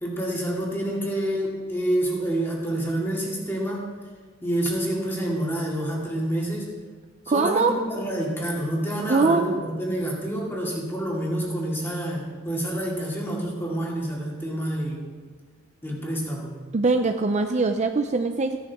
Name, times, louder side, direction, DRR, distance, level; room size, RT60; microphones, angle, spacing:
voice 1, 0.0-3.9 4.4-6.7 7.3-15.0 15.8-16.5, right 1 dB, 10° left, -3 dB, 2.4 m, -28 dB
voice 2, 7.3-7.7 9.1-9.6 16.7-18.6, right 3 dB, 35° right, 6 dB, 0.5 m, -22 dB
15.5 x 11.5 x 3.6 m, 1.5 s
head